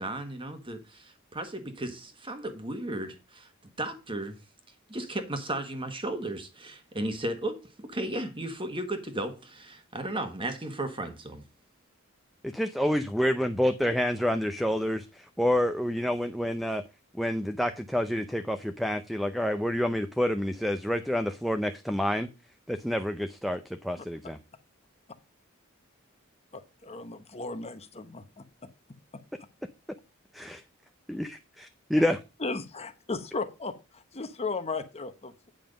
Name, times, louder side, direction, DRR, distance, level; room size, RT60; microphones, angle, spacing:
voice 1, 0.0-3.5 3.8-4.4 4.9-11.4, right 1 dB, 25° right, 1.4 m, -35 dB
voice 2, 12.4-16.8 17.1-22.3 22.7-24.4 30.3-30.6 31.1-32.2, equal, ahead, 0.6 m, -28 dB
voice 3, 26.5-28.4 32.0-32.1 32.4-35.5, left 3 dB, 30° left, 0.9 m, -36 dB
9.0 x 5.6 x 5.2 m
head